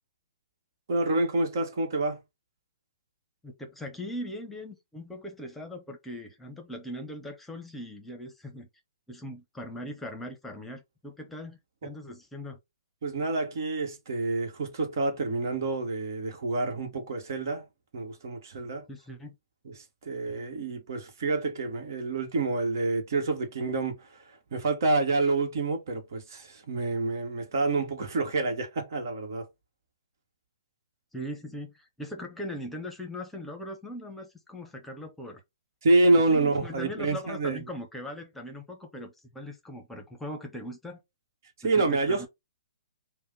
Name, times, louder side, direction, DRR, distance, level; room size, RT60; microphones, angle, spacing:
voice 1, 0.9-2.2 11.8-11.9 13.0-17.6 17.9-18.9 19.6-29.5 35.8-37.6 41.6-42.3, right 2 dB, 60° right, 1.5 m, -28 dB
voice 2, 3.4-8.7 9.1-12.6 18.9-19.3 31.1-35.4 36.3-41.0 41.6-42.3, left 1 dB, 5° left, 1.0 m, -40 dB
5.4 x 2.3 x 3.8 m
hypercardioid pair, 125°, 2 cm